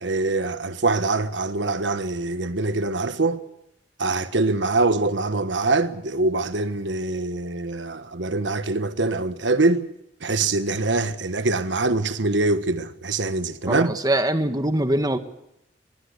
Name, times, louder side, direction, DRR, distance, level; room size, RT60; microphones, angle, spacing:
voice 1, 0.0-3.4 4.0-9.9 10.2-13.9, right 3 dB, 90° right, 1.4 m, -24 dB
voice 2, 13.7-15.2, right 1 dB, 20° right, 1.5 m, -23 dB
22.5 x 20.5 x 8.1 m
head